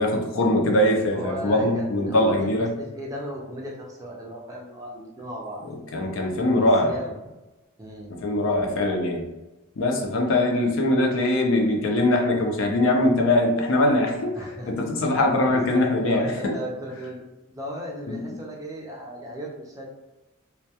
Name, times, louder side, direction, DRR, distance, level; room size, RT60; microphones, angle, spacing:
voice 1, 0.0-2.7 5.9-6.9 8.1-9.3 9.8-14.4 14.7-16.5 18.1-18.4, left 1 dB, 65° left, 2 dB, 0.5 m, -22 dB
voice 2, 1.1-2.5 2.8-5.6 6.6-7.1 7.8-8.1 14.3-14.9 15.1-19.9, equal, 15° right, -2 dB, 0.4 m, -36 dB
2.2 x 2.2 x 2.7 m, 1.0 s
head